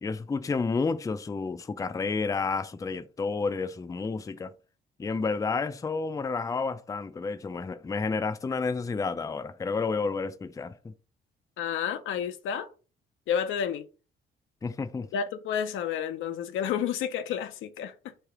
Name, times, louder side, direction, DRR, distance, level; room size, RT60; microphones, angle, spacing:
voice 1, 0.0-4.5 5.0-10.9 14.6-15.1, left 4 dB, 15° left, 0.4 m, -30 dB
voice 2, 11.6-12.7 13.3-13.9 15.1-18.1, left 8 dB, 80° left, 0.6 m, -30 dB
3.3 x 2.8 x 4.6 m
cardioid pair, 90°, 20 cm